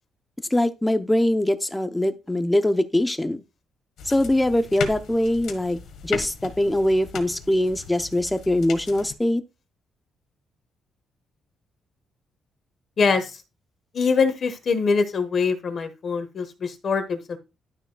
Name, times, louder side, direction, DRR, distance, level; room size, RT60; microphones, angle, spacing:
voice 1, 0.5-3.4 4.0-9.4, left 1 dB, 5° left, 0.6 m, -22 dB
sound 1, 4.0-9.1, left 6 dB, 70° left, 1.4 m, -37 dB
voice 2, 13.0-13.4 13.9-17.4, left 5 dB, 40° left, 1.2 m, -23 dB
11.5 x 6.5 x 2.3 m
cardioid pair, 170°, 0 cm